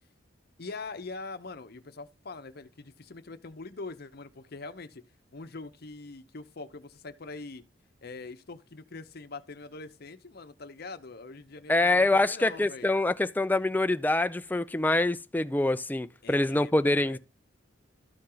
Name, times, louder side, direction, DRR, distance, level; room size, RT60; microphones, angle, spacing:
voice 1, 0.6-5.0 5.3-7.6 8.0-12.9 16.2-17.2, left 3 dB, 55° left, 0.8 m, -43 dB
voice 2, 11.7-17.2, left 2 dB, 10° left, 0.3 m, -25 dB
13.0 x 4.4 x 3.8 m
head